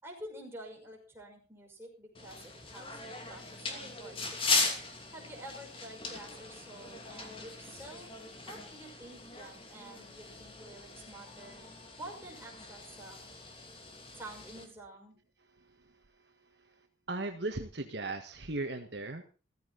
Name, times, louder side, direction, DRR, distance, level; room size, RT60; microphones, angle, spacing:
voice 1, 0.0-4.4 5.1-8.1 8.5-11.7 12.0-13.3 14.1-15.2, right 1 dB, 10° right, 0 dB, 5.9 m, -49 dB
sound 1, 2.1-14.6, left 3 dB, 30° left, 2.8 m, -38 dB
voice 2, 17.1-19.3, right 2 dB, 60° right, 5 dB, 1.7 m, -37 dB
15.5 x 14.5 x 4.1 m, 0.34 s
head